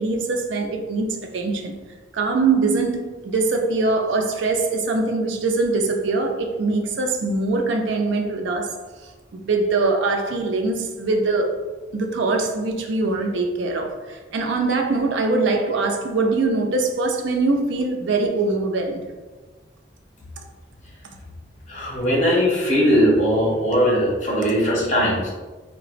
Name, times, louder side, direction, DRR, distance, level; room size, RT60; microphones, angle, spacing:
voice 1, 0.0-1.8 2.1-8.7 9.3-11.5 11.9-19.0 21.0-21.1, right 3 dB, 75° right, 3 dB, 0.4 m, -22 dB
voice 2, 21.7-25.3, equal, 40° left, -4 dB, 0.9 m, -19 dB
3.9 x 2.2 x 2.4 m, 1.3 s
head